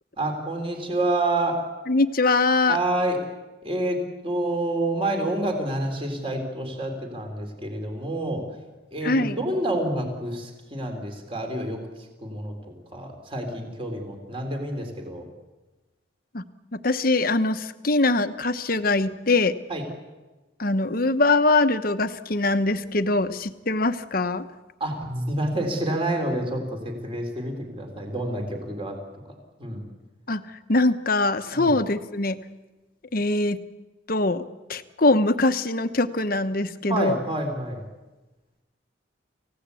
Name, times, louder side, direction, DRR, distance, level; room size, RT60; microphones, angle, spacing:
voice 1, 0.2-1.6 2.7-3.2 3.6-8.4 8.9-11.8 12.2-12.5 12.9-15.2 19.7-19.8 24.8-29.0 29.6-29.9 31.5-31.7 36.9-37.8, right 1 dB, 30° right, 3 dB, 3.8 m, -28 dB
voice 2, 1.9-2.8 9.0-9.4 16.3-16.4 16.7-19.6 20.6-24.4 30.3-30.4 30.7-32.4 33.1-33.6 34.1-34.4 34.7-37.2, left 2 dB, 50° left, 10 dB, 1.0 m, -22 dB
28.5 x 17.0 x 8.4 m, 1.2 s
head